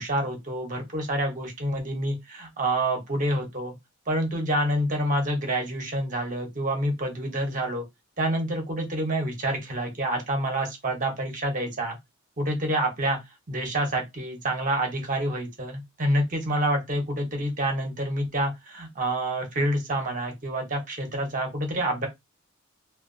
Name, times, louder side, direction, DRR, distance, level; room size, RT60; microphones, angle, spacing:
voice 1, 0.0-3.7 4.1-7.8 8.2-12.0 12.4-13.2 13.5-22.1, right 1 dB, 40° right, 0.9 m, -27 dB
2.8 x 2.2 x 2.6 m
head